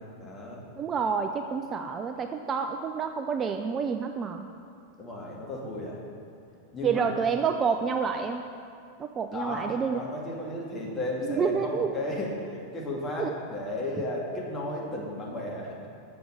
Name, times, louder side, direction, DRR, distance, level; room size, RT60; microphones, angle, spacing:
voice 1, 0.2-0.6 5.0-6.0 6.7-7.1 9.3-9.7 9.9-15.9, left 1 dB, 20° left, -3 dB, 1.8 m, -34 dB
voice 2, 0.8-4.5 6.8-8.5 9.0-10.0 11.3-11.9 13.2-13.3, right 6 dB, 25° right, 6 dB, 0.3 m, -28 dB
7.0 x 6.1 x 6.4 m, 2.5 s
figure-of-eight pair, 90°, 0 cm